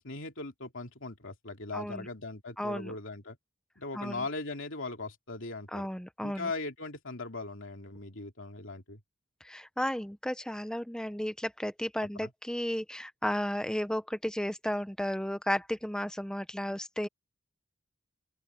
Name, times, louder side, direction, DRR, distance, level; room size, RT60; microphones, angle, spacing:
voice 1, 0.0-3.4 3.8-5.9 6.2-9.0 12.2-12.3, left 3 dB, 60° left, 3.2 m, -39 dB
voice 2, 1.7-2.1 2.6-2.9 3.9-4.2 5.7-6.5 9.4-17.1, equal, 5° left, 0.7 m, -33 dB
open air
head